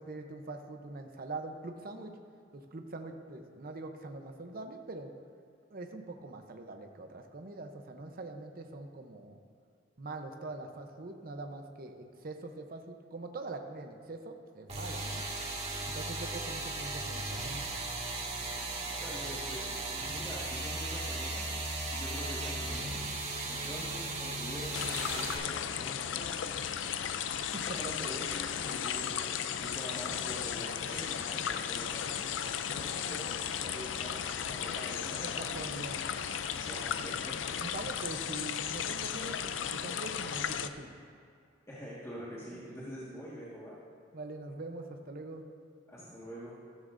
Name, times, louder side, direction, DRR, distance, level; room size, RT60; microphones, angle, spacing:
voice 1, 0.0-2.2 2.5-5.1 5.7-9.4 10.0-15.2 15.8-17.6 27.5-27.7 35.2-36.0 37.6-41.0 44.1-45.4, right 2 dB, 50° right, 5 dB, 0.8 m, -43 dB
sound 1, 14.7-25.3, right 2 dB, 35° right, 1.9 m, -36 dB
voice 2, 19.0-21.5 21.9-23.0 23.5-26.9 27.6-28.3 28.7-29.1 29.5-32.1 32.6-35.5 36.5-37.4 41.7-43.8 45.9-46.5, equal, 15° left, -8 dB, 1.7 m, -45 dB
sound 2, 24.7-40.7, left 8 dB, 75° left, 0.5 m, -35 dB
14.5 x 13.0 x 2.6 m, 2.4 s
head